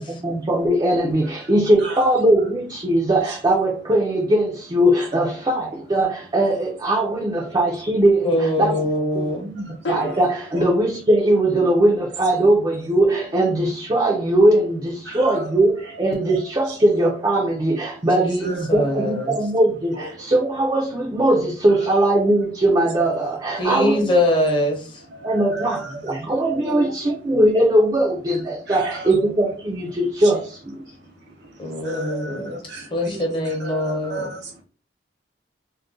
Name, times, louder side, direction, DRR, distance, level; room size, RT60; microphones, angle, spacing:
voice 1, 0.0-8.8 9.2-24.1 25.2-30.8, right 1 dB, 25° right, 0.4 m, -20 dB
sound 1, 5.3-5.9 9.8-10.8, left 2 dB, 85° left, 0.7 m, -33 dB
voice 2, 7.0-7.5 9.6-9.8 10.5-10.7 15.0-15.5 16.7-16.8 18.4-18.8 19.2-19.3 19.9-20.3 21.7-21.9 25.1-26.3 26.6-27.1 28.7-29.3 30.2-30.3 30.9-34.6, right 1 dB, 65° right, 0.8 m, -35 dB
voice 3, 8.2-9.5 18.2-19.3 23.6-25.0 31.6-32.6 32.9-34.3, left 1 dB, 25° left, 0.7 m, -23 dB
2.5 x 2.1 x 3.6 m
head